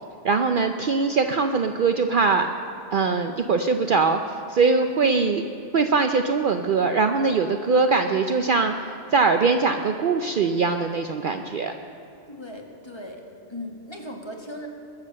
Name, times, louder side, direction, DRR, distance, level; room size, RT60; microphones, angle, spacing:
voice 1, 0.2-2.5 2.9-4.2 4.5-5.4 5.7-8.7 9.1-11.7, right 4 dB, 55° right, 6 dB, 0.7 m, -21 dB
voice 2, 12.3-13.2 13.5-14.7, left 1 dB, 25° left, 1 dB, 1.5 m, -37 dB
21.5 x 7.5 x 6.5 m, 2.9 s
omnidirectional pair, 1.2 m